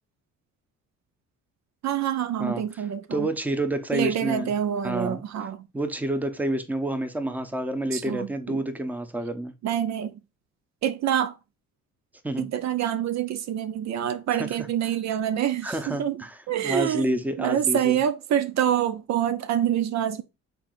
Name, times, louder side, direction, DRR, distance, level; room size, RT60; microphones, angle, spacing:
voice 1, 1.8-3.3 3.9-5.7 7.9-8.6 9.6-10.2 10.8-11.4 12.4-20.2, right 10 dB, 65° right, 0.5 m, -26 dB
voice 2, 2.4-2.8 3.1-4.5 4.8-5.2 5.7-9.5 12.2-12.5 14.3-14.5 15.6-16.4 16.6-18.0, right 1 dB, 5° right, 0.7 m, -29 dB
5.8 x 3.8 x 2.4 m
cardioid pair, 90°, 30 cm